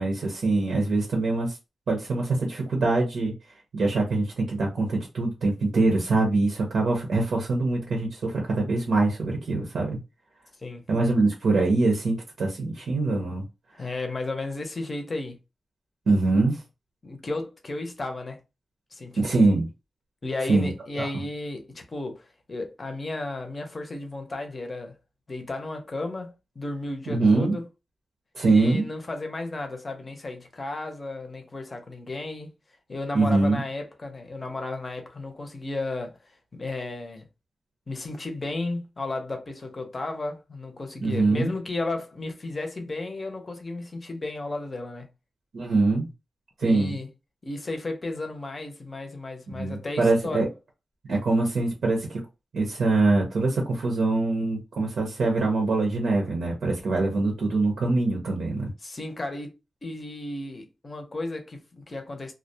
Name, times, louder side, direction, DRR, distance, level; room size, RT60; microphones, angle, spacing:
voice 1, 0.0-1.6 1.9-3.3 3.7-10.0 10.9-13.4 16.1-16.6 19.2-19.7 20.5-20.7 21.0-21.1 27.1-27.5 28.3-28.8 33.1-33.6 41.0-41.5 45.5-46.1 46.6-47.0 49.5-50.5 51.1-52.2 52.5-58.7, right 3 dB, 75° right, 0.7 m, -23 dB
voice 2, 13.7-15.4 17.0-18.4 18.9-19.3 20.2-24.9 25.3-27.7 28.4-32.5 32.9-36.2 36.5-37.2 37.9-45.1 46.6-47.1 47.4-50.4 58.8-59.5 59.8-62.3, left 2 dB, 35° left, 0.6 m, -34 dB
2.3 x 2.1 x 2.7 m
wide cardioid pair, 130°, 0 cm